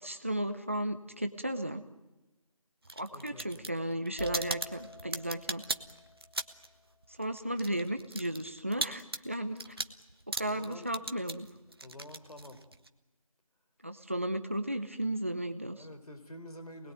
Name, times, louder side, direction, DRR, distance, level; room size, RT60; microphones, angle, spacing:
voice 1, 0.0-1.8 3.0-5.6 7.2-9.6 10.3-11.5 13.8-15.9, right 1 dB, 20° right, 8 dB, 0.9 m, -34 dB
sound 1, 2.8-6.8 7.0-12.9, right 2 dB, 40° right, 1.1 m, -38 dB
voice 2, 3.1-3.7 10.4-10.9 11.8-12.6 15.8-16.9, left 1 dB, 80° left, 8 dB, 3.9 m, -48 dB
sound 2, 4.2-8.0, left 2 dB, 35° left, 1.7 m, -50 dB
28.5 x 20.5 x 9.1 m, 1.0 s
figure-of-eight pair, 175°, 19 cm